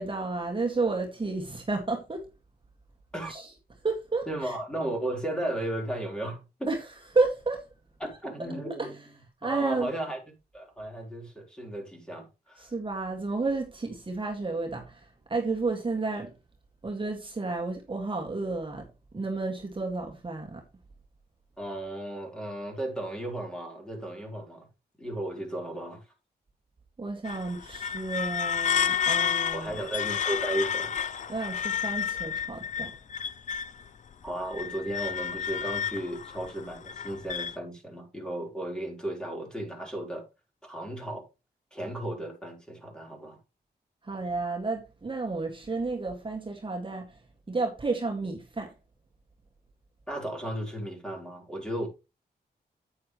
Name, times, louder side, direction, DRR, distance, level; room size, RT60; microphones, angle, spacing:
voice 1, 0.0-2.2 3.3-3.5 3.8-4.5 6.7-6.8 7.1-7.7 8.8-8.9 9.4-9.9 12.6-16.3 16.8-18.9 19.1-20.6 27.0-29.8 31.3-32.9 44.0-47.1 47.5-48.7, right 3 dB, 30° right, 2.0 m, -31 dB
voice 2, 4.3-6.7 8.0-9.0 9.4-10.2 10.5-12.7 21.6-24.7 25.0-26.0 29.5-30.9 34.2-40.2 40.6-41.3 41.7-43.4 50.1-51.9, right 1 dB, 5° left, 4.1 m, -35 dB
glass scraping ST, 27.2-33.9 34.3-37.6, left 8 dB, 45° left, 0.5 m, -31 dB
9.3 x 9.1 x 3.2 m
wide cardioid pair, 95°, 17 cm